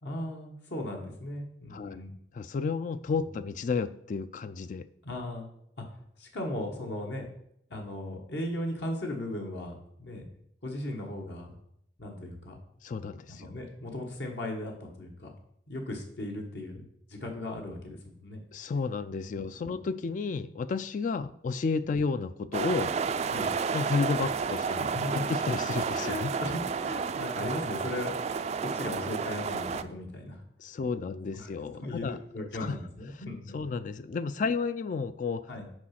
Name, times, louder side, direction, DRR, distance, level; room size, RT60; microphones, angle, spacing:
voice 1, 0.0-2.2 5.0-5.5 5.8-5.9 6.2-7.3 7.7-10.3 10.6-11.6 12.0-12.6 13.3-15.3 15.7-18.4 19.6-19.8 21.8-21.9 23.3-23.5 24.8-25.2 26.0-28.2 28.6-30.4 31.3-33.6 35.5-35.7, left 1 dB, 70° left, 1 dB, 1.3 m, -37 dB
voice 2, 1.7-2.0 2.3-4.9 12.8-13.4 18.5-22.9 23.7-24.8 25.1-26.3 30.6-32.8 33.5-35.5, left 4 dB, 45° left, 13 dB, 0.3 m, -32 dB
sound 1, 22.5-29.8, right 5 dB, 40° right, 0.3 m, -31 dB
6.2 x 4.9 x 5.8 m, 0.72 s
head